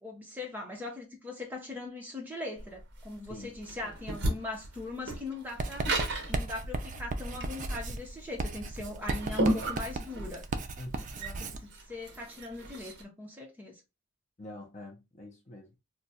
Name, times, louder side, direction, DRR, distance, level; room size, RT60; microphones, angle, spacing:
voice 1, 0.0-10.4 11.1-13.7, left 2 dB, 10° right, 0.7 m, -41 dB
sound 1, 2.6-13.0, right 1 dB, 50° right, 0.7 m, -34 dB
Writing, 5.6-11.6, right 2 dB, 35° right, 0.3 m, -36 dB
voice 2, 10.8-11.2 14.4-15.8, left 1 dB, 30° left, 0.6 m, -46 dB
2.3 x 2.3 x 4.0 m
head